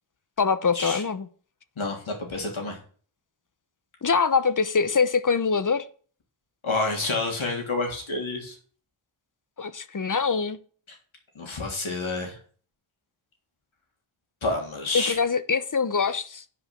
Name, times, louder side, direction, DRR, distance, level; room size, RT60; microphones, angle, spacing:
voice 1, 0.4-1.3 4.0-5.9 9.6-10.6 14.9-16.4, left 5 dB, 40° left, 1.0 m, -24 dB
voice 2, 1.8-2.8 6.6-8.6 11.4-12.4 14.4-15.2, left 3 dB, 70° left, 3.4 m, -29 dB
10.0 x 5.1 x 5.9 m
cardioid pair, 55°, 49 cm